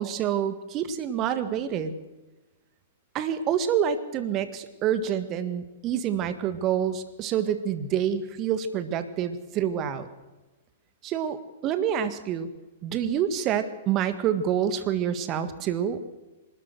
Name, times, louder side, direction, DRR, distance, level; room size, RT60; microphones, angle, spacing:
voice 1, 0.0-1.9 3.1-10.1 11.0-12.5 12.8-16.0, right 9 dB, 30° right, 11 dB, 1.7 m, -27 dB
25.5 x 13.0 x 7.9 m, 1.1 s
figure-of-eight pair, 105°, 0 cm